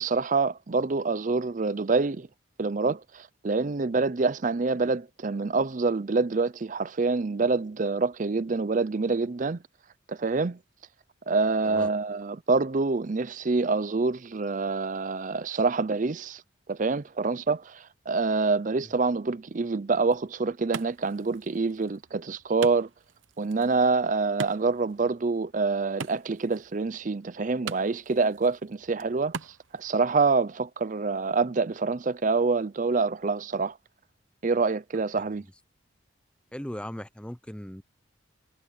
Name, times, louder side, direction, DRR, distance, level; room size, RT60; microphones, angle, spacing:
voice 1, 0.0-2.3 2.6-9.6 10.1-10.6 11.3-16.4 16.7-22.9 23.4-29.3 29.7-33.8 34.4-35.4, right 4 dB, 40° right, 0.5 m, -26 dB
Wood, 19.9-29.9, right 5 dB, 75° right, 0.7 m, -44 dB
voice 2, 36.5-37.8, equal, 5° left, 0.8 m, -38 dB
head